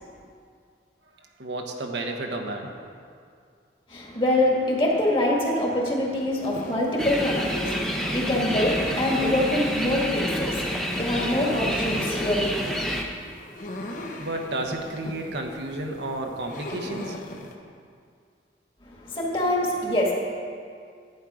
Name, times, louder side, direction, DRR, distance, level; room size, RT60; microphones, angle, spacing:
voice 1, 1.2-2.7 14.2-17.2, right 2 dB, 70° right, 2 dB, 1.1 m, -32 dB
voice 2, 3.9-12.8 18.8-20.1, left 1 dB, 30° left, -2 dB, 1.8 m, -25 dB
sound 1, 6.3-17.6, left 1 dB, 45° left, 1.0 m, -39 dB
sound 2, 7.0-13.0, equal, 5° left, 0.7 m, -28 dB
11.0 x 9.2 x 4.9 m, 2.2 s
head